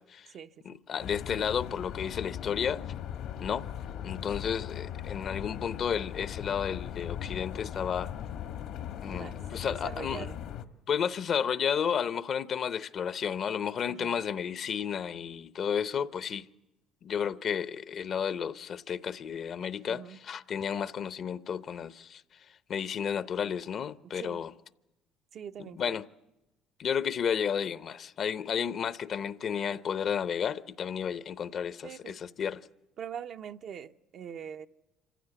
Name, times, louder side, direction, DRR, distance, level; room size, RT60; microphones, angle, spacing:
voice 1, 0.0-0.3 0.6-2.8 3.4-3.7 4.0-8.1 9.0-10.3 10.9-16.5 17.0-22.2 22.7-24.5 25.6-26.0 26.8-32.7, left 7 dB, 50° left, 0.7 m, -32 dB
sound 1, 1.0-10.6, left 9 dB, 75° left, 1.3 m, -39 dB
voice 2, 9.1-9.4 9.7-10.4 13.9-14.2 19.9-20.2 24.1-24.4 25.3-26.0 31.8-32.2 33.0-34.7, right 8 dB, 55° right, 0.7 m, -42 dB
26.5 x 15.0 x 8.0 m
supercardioid pair, 80°, 0 cm